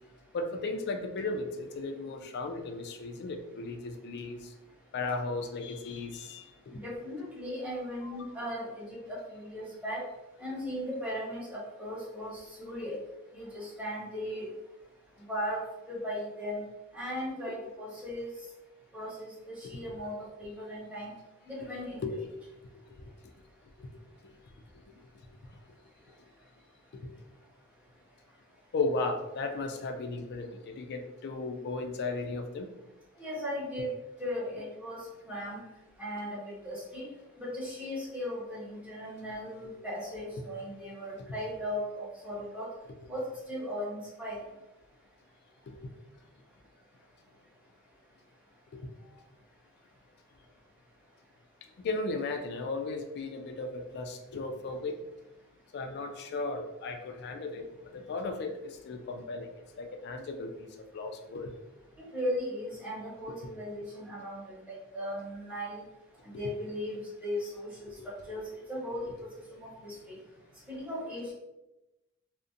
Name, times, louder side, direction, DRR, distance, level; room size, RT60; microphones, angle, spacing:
voice 1, 0.3-4.5 4.9-6.5 8.0-8.1 17.5-17.6 19.7-19.8 22.0-22.2 23.0-23.1 23.8-23.9 26.9-27.1 28.7-32.7 45.7-45.9 51.8-55.0 55.7-57.6 57.9-59.5 59.8-61.5 67.9-68.0, left 3 dB, 50° left, 5 dB, 0.3 m, -35 dB
voice 2, 6.7-10.0 10.4-13.0 13.3-14.5 15.3-15.6 15.9-16.6 16.9-18.3 18.9-19.1 19.5-21.1 21.5-22.2 33.2-33.9 34.2-35.0 35.3-35.6 36.0-37.1 37.4-42.7 43.1-44.4 62.0-65.8 66.4-67.9 68.3-70.2 70.7-71.3, equal, 5° right, -10 dB, 1.0 m, -37 dB
2.5 x 2.1 x 2.4 m, 0.97 s
head